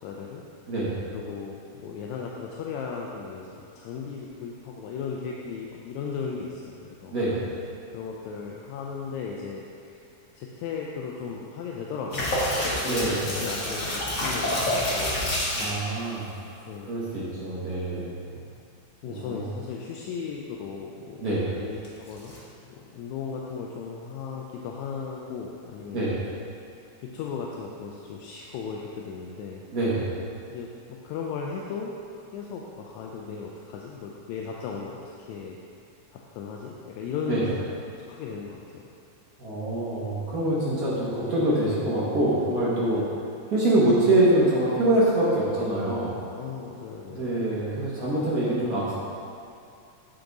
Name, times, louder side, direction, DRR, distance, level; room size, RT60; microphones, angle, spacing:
voice 1, 0.0-0.4 1.1-7.2 7.9-10.1 10.4-15.8 16.7-17.0 18.0-18.2 19.0-22.4 22.6-26.2 26.7-29.6 30.5-35.6 36.1-38.8 42.9-43.1 46.4-47.4, left 5 dB, 85° left, -1 dB, 1.9 m, -36 dB
sound 1, 12.1-15.8 21.8-22.4, left 1 dB, 50° left, 0.9 m, -27 dB
voice 2, 12.8-13.3 15.5-16.3 16.9-18.2 19.0-19.4 21.2-21.4 25.9-26.1 29.7-30.1 37.3-37.5 39.4-43.0 43.5-46.1 47.1-48.9, right 1 dB, 70° right, -8 dB, 0.8 m, -24 dB
8.9 x 4.7 x 3.9 m, 2.4 s
omnidirectional pair, 3.3 m